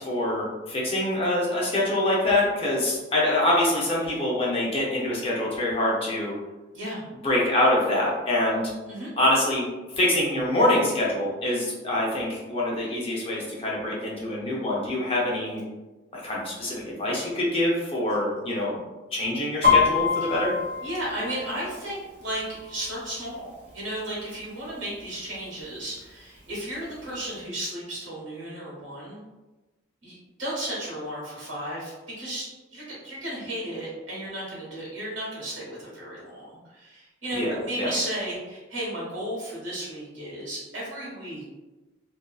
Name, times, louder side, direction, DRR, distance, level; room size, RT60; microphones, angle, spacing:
voice 1, 0.0-6.3 7.2-8.6 9.2-9.7 9.9-15.6 16.2-18.8 19.1-20.5 37.3-37.9, left 1 dB, 30° left, -4 dB, 0.6 m, -25 dB
Piano, 19.6-23.3 23.6-24.0 24.4-25.0 25.6-25.7 25.9-27.0 27.3-27.4, left 6 dB, 55° right, 1.0 m, -25 dB
voice 2, 20.8-29.2 30.0-41.5, right 1 dB, 80° right, -6 dB, 1.2 m, -34 dB
2.6 x 2.2 x 2.3 m, 1.1 s
head